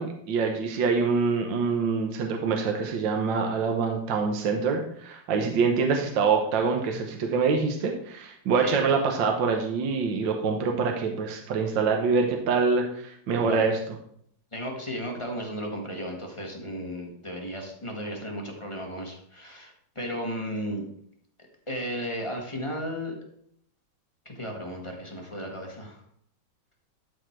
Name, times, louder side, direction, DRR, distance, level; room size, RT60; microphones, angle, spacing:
voice 1, 0.0-13.8, right 5 dB, 75° right, 3 dB, 1.6 m, -25 dB
voice 2, 13.4-13.7 14.5-20.8 21.7-23.2 24.2-26.0, equal, 20° left, 0 dB, 1.2 m, -34 dB
12.0 x 4.3 x 4.5 m, 0.67 s
omnidirectional pair, 2.1 m